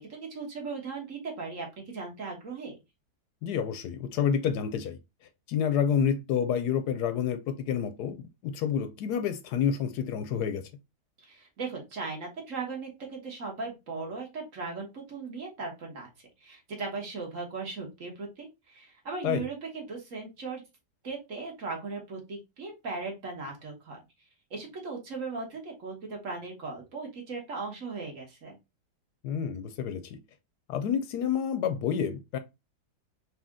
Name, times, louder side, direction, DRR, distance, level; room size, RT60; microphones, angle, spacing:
voice 1, 0.0-1.7 1.9-2.7 11.2-16.1 16.4-20.6 21.0-24.0 24.5-28.6, right 4 dB, 50° right, 1.5 m, -38 dB
voice 2, 3.4-5.0 5.5-10.6 19.2-19.4 29.2-30.2 30.7-32.4, left 8 dB, 75° left, 1.1 m, -29 dB
4.2 x 2.7 x 3.5 m
omnidirectional pair, 1.9 m